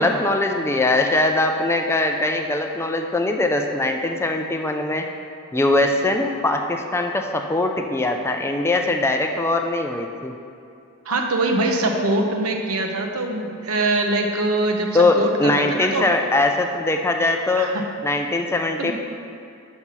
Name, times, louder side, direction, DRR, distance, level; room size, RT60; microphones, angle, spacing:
voice 1, 0.0-5.1 5.5-10.3 14.9-17.7 18.0-18.9, left 2 dB, 10° left, 4 dB, 0.4 m, -21 dB
voice 2, 11.1-16.1 17.6-17.8 18.8-18.9, right 2 dB, 80° right, 3 dB, 0.8 m, -23 dB
5.7 x 5.4 x 6.0 m, 2.6 s
head